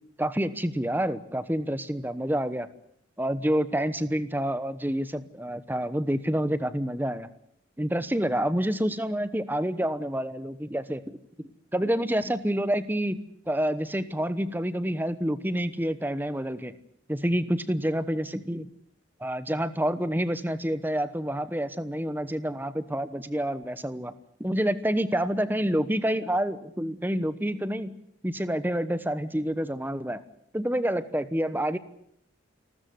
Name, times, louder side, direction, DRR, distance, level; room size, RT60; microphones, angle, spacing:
voice 1, 0.2-2.7 3.2-7.3 7.8-11.2 11.7-16.8 17.1-18.7 19.2-24.1 24.4-30.2 30.5-31.8, equal, 10° right, 13 dB, 1.1 m, -28 dB
28.5 x 13.5 x 9.5 m, 0.72 s
head